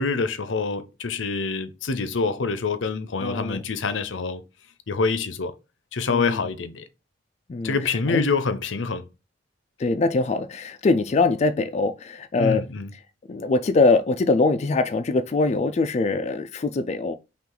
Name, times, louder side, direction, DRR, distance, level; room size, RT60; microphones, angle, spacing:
voice 1, 0.0-4.4 4.9-5.5 5.9-6.8 7.6-9.1 12.4-12.9, left 4 dB, 80° left, 0.7 m, -26 dB
voice 2, 3.2-3.6 6.1-6.4 7.5-7.8 8.1-8.2 9.8-12.7 13.3-17.1, left 3 dB, 35° left, 0.4 m, -22 dB
5.6 x 2.5 x 3.8 m
head